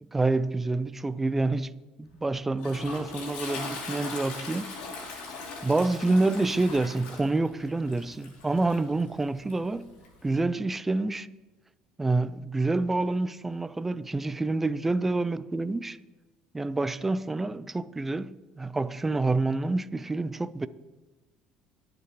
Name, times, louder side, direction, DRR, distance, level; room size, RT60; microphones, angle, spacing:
voice 1, 0.1-4.8 5.6-9.9 10.2-11.3 12.0-16.0 16.5-20.7, right 2 dB, 10° right, 0.4 m, -27 dB
Toilet flush, 2.1-10.4, left 4 dB, 70° left, 3.3 m, -40 dB
21.5 x 8.2 x 3.3 m
cardioid pair, 130°, 2 cm